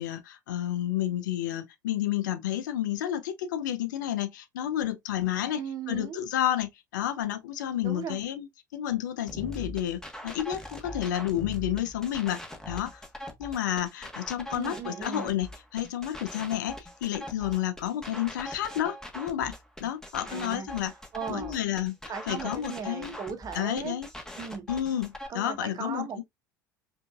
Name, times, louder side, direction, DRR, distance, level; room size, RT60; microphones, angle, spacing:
voice 1, 0.0-5.6 5.9-8.5 8.7-12.4 12.7-13.0 13.4-15.5 15.7-19.5 19.8-20.9 21.3-21.9 22.3-23.2 23.5-24.1 24.7-26.2, left 11 dB, 70° left, 0.6 m, -30 dB
voice 2, 5.5-6.2 7.8-8.2 14.5-15.4 20.2-20.7 21.1-21.8 22.1-23.9 24.4-24.7 25.3-26.2, right 7 dB, 35° right, 1.0 m, -37 dB
sound 1, 9.3-25.3, left 1 dB, 5° left, 1.3 m, -42 dB
5.1 x 2.7 x 2.4 m
figure-of-eight pair, 65°, 10 cm